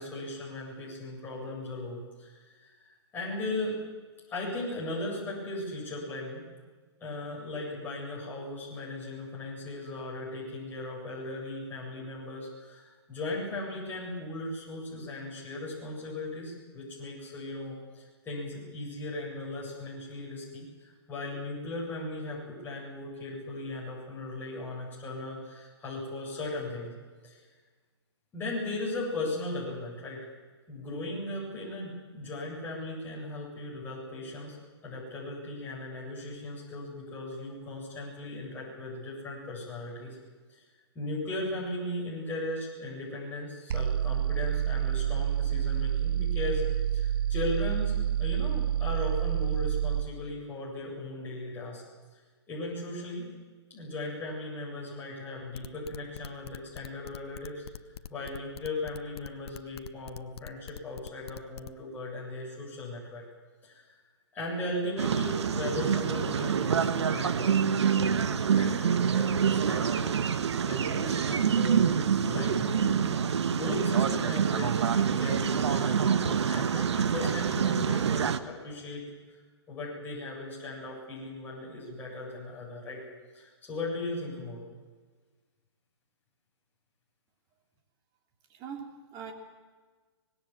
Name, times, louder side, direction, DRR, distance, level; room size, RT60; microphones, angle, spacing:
voice 1, 0.0-2.7 3.1-3.8 4.3-6.5 7.0-26.9 27.2-27.4 28.3-30.2 30.7-34.6 34.8-40.2 40.5-40.6 40.9-51.8 52.5-53.3 53.7-57.6 58.1-63.2 63.6-63.9 64.3-70.1 70.6-71.9 72.3-79.0 79.7-83.0 83.3-84.6, left 2 dB, 15° left, -5 dB, 8.0 m, -37 dB
sound 1, 43.7-50.1, right 10 dB, 55° right, 1.1 m, -28 dB
sound 2, 55.5-61.7, left 9 dB, 65° left, 1.1 m, -44 dB
sound 3, 65.0-78.4, right 7 dB, 75° right, 1.4 m, -26 dB
voice 2, 88.5-89.3, right 6 dB, 25° right, 3 dB, 3.2 m, -42 dB
25.0 x 19.5 x 7.5 m, 1.4 s
hypercardioid pair, 150°, 14 cm